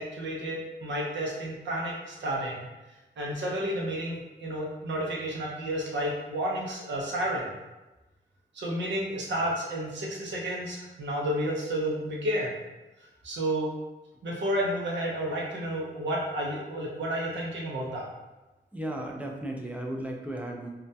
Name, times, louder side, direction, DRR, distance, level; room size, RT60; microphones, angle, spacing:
voice 1, 0.0-2.7 3.2-7.5 8.5-12.6 13.2-13.7 14.2-18.1, right 1 dB, 75° right, -3 dB, 0.6 m, -31 dB
voice 2, 18.7-20.7, right 1 dB, 5° right, 0 dB, 0.4 m, -35 dB
2.2 x 2.1 x 2.6 m, 1.1 s
cardioid pair, 75°, 19 cm